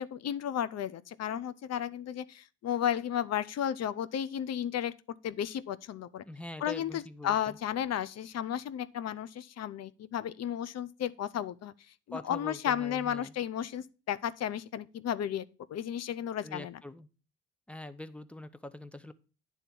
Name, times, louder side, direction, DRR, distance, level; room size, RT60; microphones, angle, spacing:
voice 1, 0.0-4.9 5.2-6.2 6.6-11.7 12.1-16.8, left 10 dB, 55° left, 0.6 m, -33 dB
voice 2, 6.3-7.6 12.1-13.3 16.4-17.1 17.7-19.1, left 1 dB, 5° left, 0.7 m, -44 dB
10.0 x 3.6 x 6.9 m
cardioid pair, 90°, 30 cm